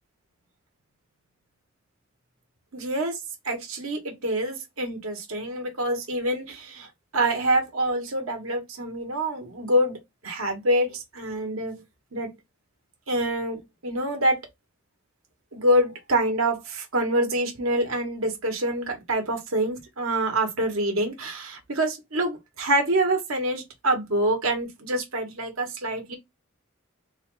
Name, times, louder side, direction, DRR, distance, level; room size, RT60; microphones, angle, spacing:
voice 1, 2.7-3.1 3.4-6.9 7.1-11.8 12.1-12.4 13.1-14.4 15.5-26.2, right 1 dB, 85° right, 1.3 m, -26 dB
3.9 x 2.4 x 3.8 m
head